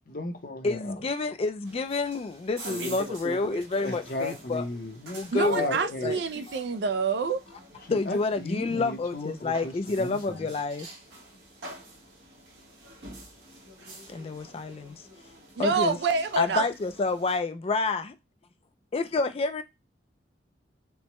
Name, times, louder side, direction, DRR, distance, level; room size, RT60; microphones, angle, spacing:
voice 1, 0.1-0.9 3.8-5.2 5.4-6.2 7.8-10.5, left 2 dB, 55° left, 0.8 m, -35 dB
voice 2, 0.6-4.6 5.1-6.6 7.9-10.9 14.1-15.0 15.6-16.0 16.4-18.1 18.9-19.6, left 3 dB, 35° left, 0.4 m, -29 dB
sound 1, 1.6-17.4, right 1 dB, 85° right, 1.3 m, -45 dB
voice 3, 5.3-7.4 15.6-16.7, right 4 dB, 70° right, 0.4 m, -27 dB
4.5 x 2.2 x 3.0 m
head